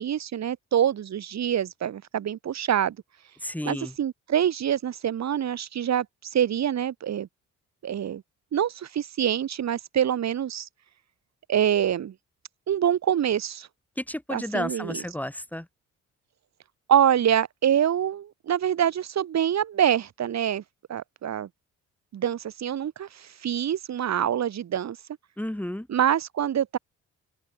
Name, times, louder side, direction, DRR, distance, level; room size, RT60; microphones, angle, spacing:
voice 1, 0.0-3.0 3.6-6.1 6.3-7.3 7.8-8.2 8.5-10.7 11.5-12.1 12.7-13.7 14.3-15.0 16.9-20.6 20.9-21.5 22.1-25.0 25.9-26.8, right 9 dB, 60° right, 4.1 m, -25 dB
voice 2, 3.4-3.9 14.0-15.7 25.4-25.9, left 1 dB, 5° left, 3.5 m, -32 dB
open air
cardioid pair, 90°, 30 cm